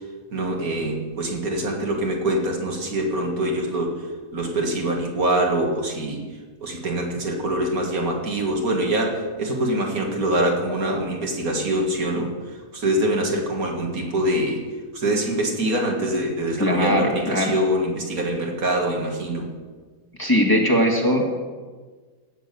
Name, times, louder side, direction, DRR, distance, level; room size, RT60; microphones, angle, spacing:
voice 1, 0.3-4.0 4.3-6.2 6.6-12.3 12.7-14.6 14.9-19.5, right 1 dB, 70° right, 0 dB, 2.3 m, -24 dB
voice 2, 16.6-17.5 20.2-21.4, equal, 15° left, -1 dB, 1.7 m, -20 dB
17.0 x 6.4 x 6.8 m, 1.4 s
omnidirectional pair, 1.5 m